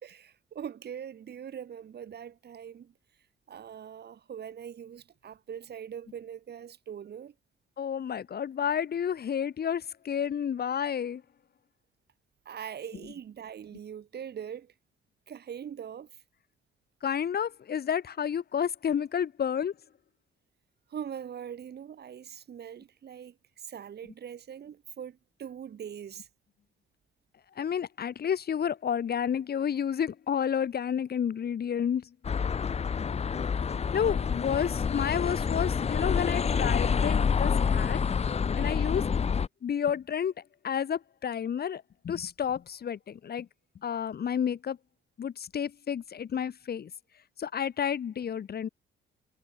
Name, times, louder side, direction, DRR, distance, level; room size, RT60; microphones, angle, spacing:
voice 1, 0.0-2.9 3.5-7.3 12.4-14.7 15.3-16.2 20.9-26.3, right 8 dB, 55° right, 2.9 m, -42 dB
voice 2, 7.8-11.2 17.0-19.7 27.6-32.1 33.9-38.0 38.5-39.0 39.6-40.3 40.6-43.5 43.8-44.8 45.2-46.9 47.4-48.7, left 8 dB, 50° left, 2.3 m, -30 dB
sound 1, 32.2-39.5, left 6 dB, 30° left, 0.7 m, -27 dB
cardioid pair, 90°, 20 cm